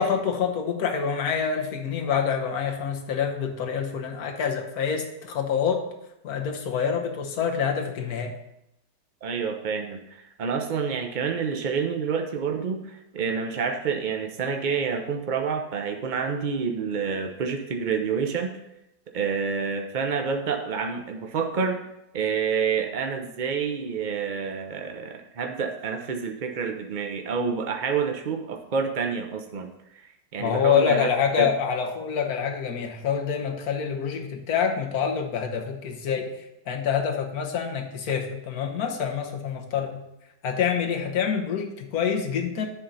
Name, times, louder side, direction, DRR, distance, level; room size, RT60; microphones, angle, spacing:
voice 1, 0.0-5.8 6.2-8.3 30.4-36.3 36.7-40.0 40.4-42.7, left 7 dB, 60° left, 3 dB, 1.4 m, -26 dB
voice 2, 9.2-18.6 19.1-21.8 22.1-31.5, right 6 dB, 80° right, 4 dB, 0.4 m, -28 dB
10.0 x 3.9 x 5.5 m, 0.85 s
omnidirectional pair, 1.8 m